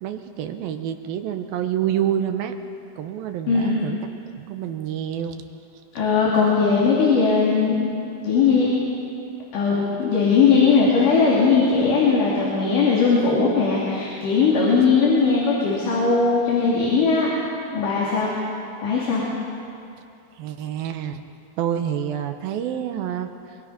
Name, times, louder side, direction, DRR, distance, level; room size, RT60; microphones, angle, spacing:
voice 1, 0.0-2.5 3.0-4.0 4.4-5.4 20.4-21.2 21.6-23.3, right 10 dB, 75° right, 7 dB, 2.5 m, -27 dB
voice 2, 3.5-3.9 5.9-7.9 8.2-8.7 9.5-17.3 17.7-18.3 18.8-19.2, left 4 dB, 55° left, -5 dB, 4.3 m, -19 dB
24.5 x 23.5 x 5.8 m, 2.5 s
omnidirectional pair, 4.7 m